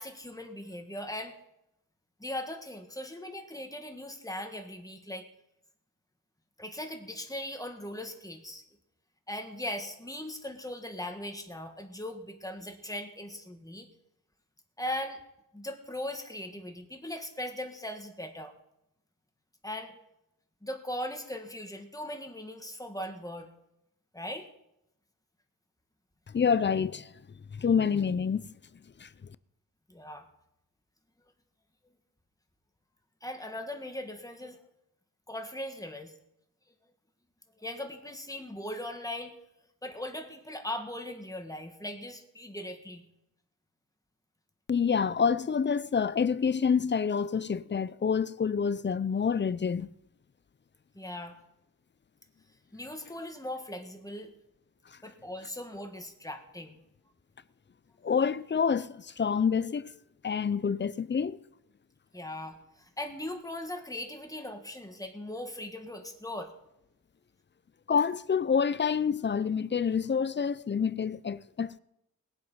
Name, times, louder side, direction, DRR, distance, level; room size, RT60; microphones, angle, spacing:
voice 1, 0.0-1.4 2.2-5.3 6.6-8.6 9.3-13.9 14.8-15.2 15.5-18.5 19.6-20.0 20.6-23.5 24.1-24.5 29.9-30.3 33.2-34.6 35.3-36.1 37.6-39.3 39.8-43.0 51.0-51.4 52.7-54.3 55.0-56.8 62.1-66.5, left 1 dB, 10° left, 1.7 m, -39 dB
voice 2, 26.3-27.1 27.5-28.5 29.0-29.1 44.7-49.9 58.0-59.9 60.2-61.4 67.9-71.8, left 6 dB, 35° left, 0.5 m, -27 dB
20.5 x 7.9 x 5.5 m
wide cardioid pair, 110°, 34 cm